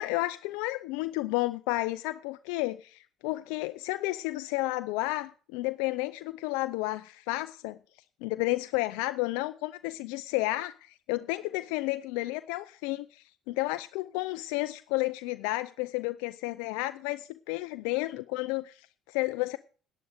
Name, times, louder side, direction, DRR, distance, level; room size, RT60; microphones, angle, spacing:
voice 1, 0.0-7.8 8.2-19.6, left 20 dB, 85° left, 0.5 m, -32 dB
10.5 x 10.0 x 6.5 m
supercardioid pair, 85°, 0 cm